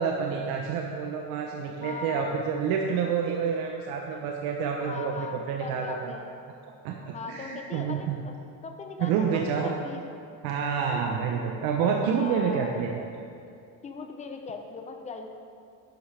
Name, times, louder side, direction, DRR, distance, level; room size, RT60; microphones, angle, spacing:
voice 1, 0.0-6.1 6.8-8.2 9.0-9.7 10.4-13.1, right 6 dB, 70° right, 1 dB, 0.9 m, -28 dB
voice 2, 1.8-2.4 4.8-6.3 7.1-8.3 8.6-10.0 10.9-11.4 12.1-12.8 13.8-15.3, left 4 dB, 20° left, 4 dB, 0.7 m, -39 dB
11.5 x 11.0 x 3.4 m, 2.5 s
cardioid pair, 175°, 37 cm